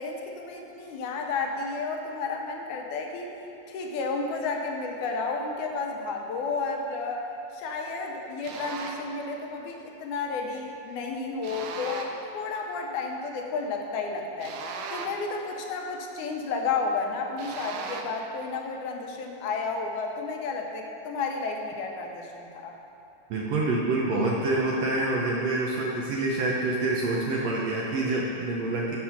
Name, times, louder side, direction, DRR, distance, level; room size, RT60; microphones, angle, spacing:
voice 1, 0.0-3.3 3.7-7.2 7.5-14.6 14.9-22.7, left 4 dB, 80° left, 2 dB, 2.1 m, -32 dB
sound 1, 8.4-9.1 11.4-12.3 14.4-15.4 17.4-18.3, right 5 dB, 90° right, 2.1 m, -38 dB
voice 2, 23.3-29.0, right 2 dB, 75° right, -3 dB, 1.6 m, -27 dB
6.6 x 5.6 x 5.6 m, 2.9 s
omnidirectional pair, 3.6 m